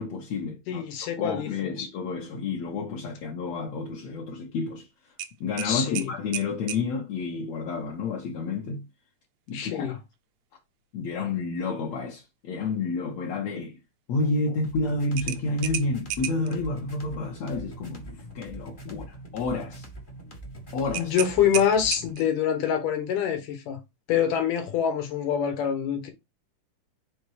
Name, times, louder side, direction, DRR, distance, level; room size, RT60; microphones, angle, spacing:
voice 1, 0.0-0.8 1.2-4.9 5.4-8.8 9.5-10.0 10.9-13.8 14.1-19.9 20.7-21.2, left 3 dB, 65° left, 2.2 m, -30 dB
voice 2, 0.7-1.9 5.6-6.1 9.5-9.9 18.9-19.0 21.0-23.8 24.1-26.1, left 9 dB, 90° left, 2.9 m, -26 dB
sound 1, 5.2-6.9 9.5-9.7 10.1-10.2 15.2-16.6 20.9-22.4, right 12 dB, 80° right, 2.0 m, -34 dB
sound 2, 14.6-22.2, right 2 dB, 35° left, 0.8 m, -43 dB
6.2 x 3.6 x 4.8 m
omnidirectional pair, 3.6 m